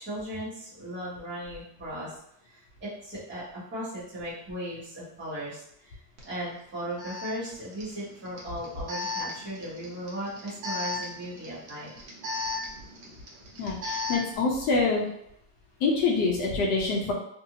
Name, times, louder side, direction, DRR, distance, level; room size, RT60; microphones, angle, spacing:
voice 1, 0.0-2.2 2.4-6.0 6.2-11.9, right 1 dB, 25° right, -9 dB, 1.3 m, -37 dB
Alarm, 6.2-6.3 7.0-14.4, left 3 dB, 65° right, 1.1 m, -36 dB
voice 2, 13.6-15.1 15.8-17.1, left 4 dB, 50° left, -2 dB, 0.7 m, -25 dB
2.6 x 2.6 x 2.8 m, 0.73 s
cardioid pair, 170°, 47 cm